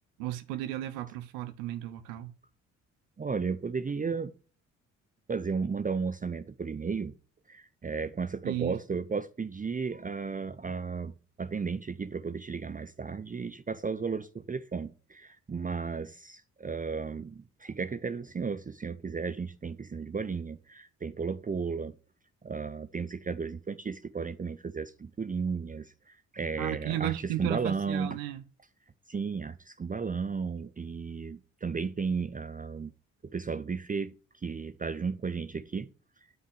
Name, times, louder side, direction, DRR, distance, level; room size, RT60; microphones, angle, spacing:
voice 1, 0.2-2.3 8.4-8.7 26.6-28.4, right 13 dB, 75° right, 0.9 m, -34 dB
voice 2, 3.2-4.3 5.3-7.1 7.5-11.1 11.4-22.0 22.4-28.2 29.1-32.9 33.2-35.9, right 5 dB, 20° right, 0.7 m, -34 dB
9.3 x 5.6 x 8.1 m
hypercardioid pair, 45°, 37 cm